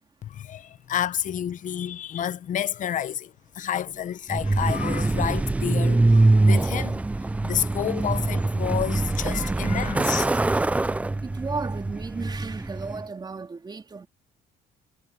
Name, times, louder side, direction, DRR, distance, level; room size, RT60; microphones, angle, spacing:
voice 1, 0.2-7.0 7.4-10.3, left 10 dB, 50° left, 0.8 m, -30 dB
Truck, 4.3-13.0, right 2 dB, 10° right, 0.3 m, -23 dB
voice 2, 11.2-14.1, right 4 dB, 25° right, 3.3 m, -34 dB
cardioid pair, 110°, 17 cm